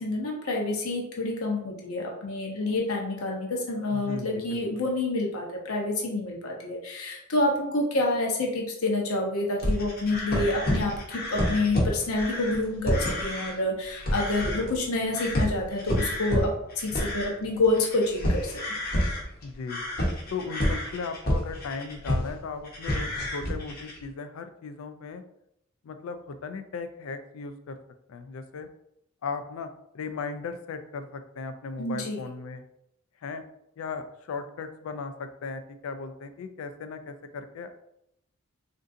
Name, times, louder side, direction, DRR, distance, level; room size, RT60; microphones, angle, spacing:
voice 1, 0.0-18.5 31.8-32.2, left 2 dB, 90° left, 0 dB, 0.8 m, -28 dB
voice 2, 3.9-4.9 19.4-19.8 20.3-25.2 25.8-27.8 28.1-28.7 29.2-32.6 33.2-33.4 33.8-37.7, left 4 dB, 70° left, 8 dB, 0.3 m, -37 dB
sound 1, 9.6-13.6 13.9-14.9 15.1-22.4 22.6-24.0, left 1 dB, 45° left, 0.8 m, -29 dB
3.6 x 2.5 x 2.5 m, 0.78 s
head